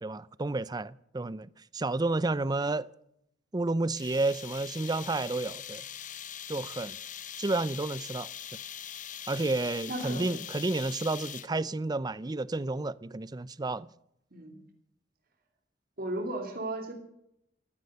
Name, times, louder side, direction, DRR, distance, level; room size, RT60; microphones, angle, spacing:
voice 1, 0.0-2.9 3.5-5.8 6.5-7.0 7.4-8.3 9.3-13.9, right 2 dB, 20° right, 0.5 m, -31 dB
sound 1, 4.0-11.7, left 9 dB, 45° left, 0.9 m, -42 dB
voice 2, 9.9-10.3 14.3-14.6 16.0-16.9, right 1 dB, 50° right, 2.8 m, -35 dB
15.0 x 14.0 x 6.7 m
head